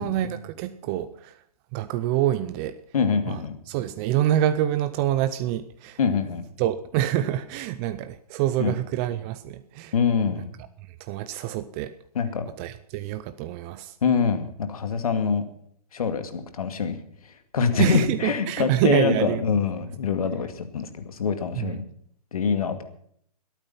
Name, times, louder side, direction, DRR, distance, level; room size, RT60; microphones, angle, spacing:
voice 1, 0.0-1.4 1.7-2.8 3.3-6.0 6.6-9.9 11.0-11.9 12.6-14.0 17.7-19.4 21.5-21.7, right 12 dB, 20° right, 12 dB, 0.5 m, -26 dB
voice 2, 2.9-3.6 6.0-6.5 8.6-8.7 9.9-10.5 12.1-12.5 14.0-15.4 15.9-17.0 17.2-21.8 22.3-22.8, left 6 dB, 65° left, 8 dB, 2.2 m, -25 dB
21.0 x 9.1 x 5.7 m, 0.65 s
hypercardioid pair, 145°, 20 cm